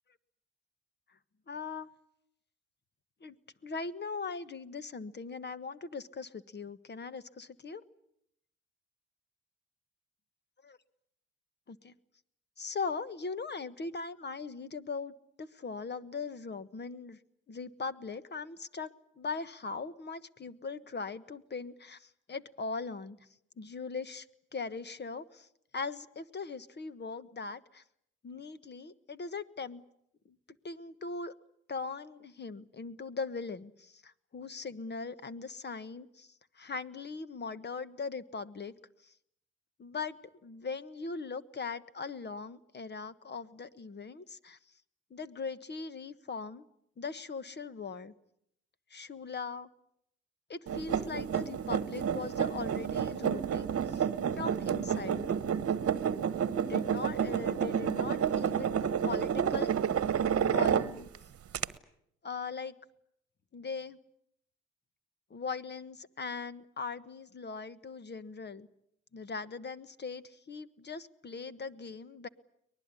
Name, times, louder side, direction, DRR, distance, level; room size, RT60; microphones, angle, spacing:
voice 1, 1.5-1.9 3.2-3.3 3.6-7.8 10.6-10.8 11.7-11.9 12.6-15.1 15.4-17.2 17.5-23.2 23.6-24.3 24.5-25.5 25.7-27.8 28.2-29.8 30.6-31.3 31.7-36.3 36.6-38.7 39.0-39.1 39.8-44.6 45.1-46.6 47.0-48.1 48.9-49.7 50.5-54.1 54.3-55.2 56.6-59.7 60.4-61.1 62.2-62.7 63.5-64.0 65.3-68.7 69.1-72.3, left 4 dB, 35° left, 14 dB, 1.4 m, -40 dB
sound 1, 50.7-61.2 61.5-61.7, right 8 dB, 50° right, 1.3 m, -30 dB
23.5 x 20.0 x 9.8 m, 0.75 s
cardioid pair, 90°, 30 cm